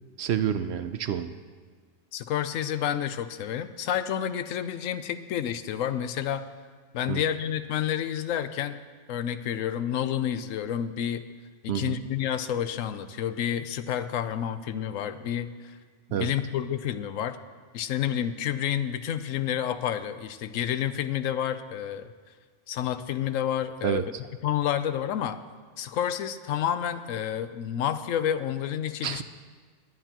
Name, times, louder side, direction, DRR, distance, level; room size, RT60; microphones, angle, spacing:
voice 1, 0.2-1.3 7.1-7.2 11.7-12.0 16.1-16.3 23.8-24.0 29.0-29.2, right 9 dB, 65° right, 10 dB, 0.7 m, -28 dB
voice 2, 2.1-6.5 6.9-8.8 9.1-11.2 11.6-15.5 16.1-17.4 17.7-22.1 22.7-24.1 24.4-25.4 25.8-29.2, left 10 dB, 90° left, 11 dB, 1.0 m, -29 dB
18.0 x 11.0 x 2.9 m, 1.5 s
omnidirectional pair, 1.3 m